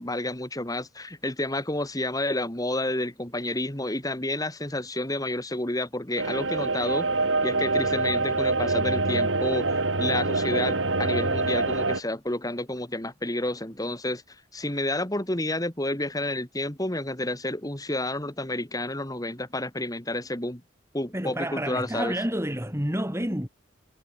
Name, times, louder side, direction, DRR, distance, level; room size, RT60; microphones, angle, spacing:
voice 1, 0.0-7.1 7.4-14.2 14.5-20.6 20.9-22.1, left 1 dB, 20° left, 2.6 m, -30 dB
sound 1, 6.2-12.0, right 3 dB, 75° right, 3.4 m, -25 dB
voice 2, 21.1-23.5, right 1 dB, 15° right, 5.2 m, -29 dB
head